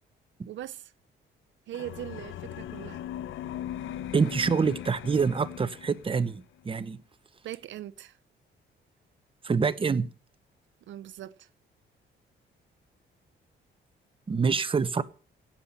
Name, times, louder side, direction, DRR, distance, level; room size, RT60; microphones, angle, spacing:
voice 1, 0.5-0.9 1.7-3.0 7.4-8.2 10.9-11.5, right 13 dB, 70° right, 0.7 m, -40 dB
sound 1, 1.7-6.4, left 11 dB, 80° left, 0.8 m, -39 dB
voice 2, 4.1-7.0 9.4-10.1 14.3-15.0, right 5 dB, 25° right, 0.9 m, -26 dB
16.0 x 5.8 x 8.5 m
cardioid pair, 90°, 20 cm